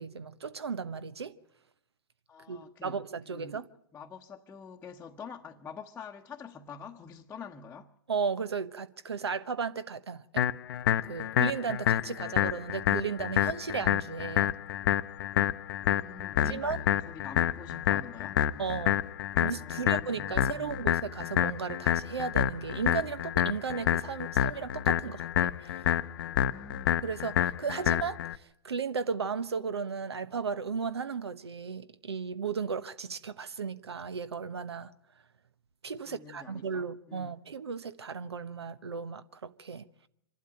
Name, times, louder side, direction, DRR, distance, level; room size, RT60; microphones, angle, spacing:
voice 1, 0.0-1.3 2.5-3.7 8.1-10.5 11.0-14.6 16.4-16.8 18.6-19.0 19.4-25.6 27.0-34.9 35.8-39.9, right 5 dB, 85° right, 1.1 m, -35 dB
voice 2, 2.3-3.0 3.3-7.9 15.9-18.4 19.5-20.8 26.2-27.0 36.0-37.3, left 5 dB, 15° left, 0.9 m, -46 dB
sound 1, 10.4-28.4, left 11 dB, 60° left, 0.8 m, -28 dB
25.5 x 12.0 x 9.0 m
hypercardioid pair, 120°, 13 cm